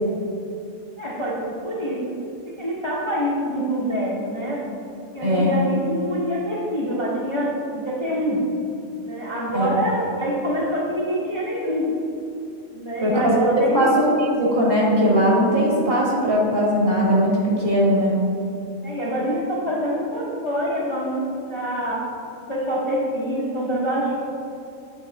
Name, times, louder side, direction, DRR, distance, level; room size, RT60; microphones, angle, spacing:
voice 1, 1.0-2.0 2.4-4.6 5.1-8.4 9.0-11.9 12.7-14.0 18.8-22.0 22.5-24.1, equal, 30° left, -6 dB, 0.6 m, -25 dB
voice 2, 5.2-5.6 9.5-9.8 13.0-18.2, equal, 50° right, -4 dB, 1.5 m, -19 dB
8.2 x 3.0 x 4.5 m, 2.6 s
omnidirectional pair, 1.3 m